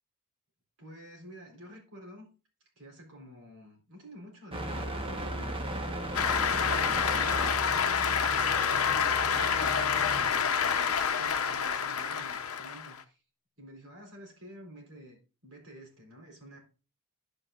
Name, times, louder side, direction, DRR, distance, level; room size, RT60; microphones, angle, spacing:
voice 1, 0.8-2.3 2.8-5.6 6.2-7.5 8.0-13.2 13.6-16.6, equal, 80° right, 4.1 m, -49 dB
sound 1, 4.5-10.3, right 1 dB, 25° right, 1.2 m, -37 dB
Cheering / Applause, 6.1-13.0, left 7 dB, 70° left, 0.8 m, -28 dB
10.5 x 8.2 x 2.5 m
head